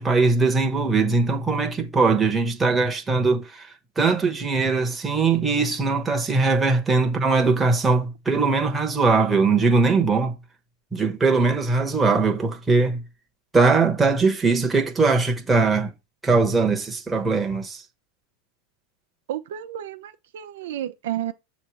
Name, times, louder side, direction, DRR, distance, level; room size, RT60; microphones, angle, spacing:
voice 1, 0.0-10.3 10.9-13.0 13.5-15.9 16.2-17.8, right 4 dB, 10° right, 1.1 m, -21 dB
voice 2, 19.3-21.3, right 11 dB, 80° right, 0.7 m, -31 dB
6.7 x 3.1 x 4.6 m
supercardioid pair, 140°, 0 cm